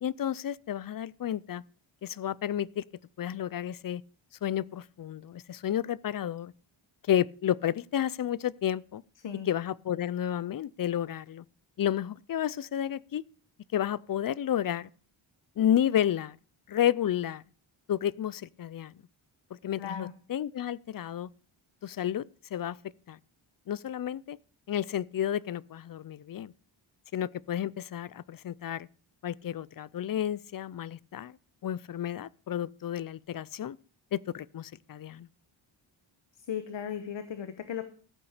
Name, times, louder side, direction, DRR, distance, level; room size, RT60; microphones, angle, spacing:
voice 1, 0.0-1.6 2.0-2.8 3.2-4.0 4.4-6.5 7.0-9.0 9.5-11.4 11.8-13.2 13.7-14.9 15.6-16.4 16.7-17.4 17.9-18.9 19.6-21.3 21.8-22.3 22.5-22.8 23.1-23.2 23.7-24.4 24.7-26.5 27.1-28.9 29.2-31.4 31.6-33.8 34.1-35.3, left 10 dB, 45° left, 0.4 m, -31 dB
voice 2, 19.8-20.1 36.4-37.8, left 8 dB, 65° left, 1.1 m, -36 dB
14.5 x 8.8 x 5.0 m
wide cardioid pair, 130°, 48 cm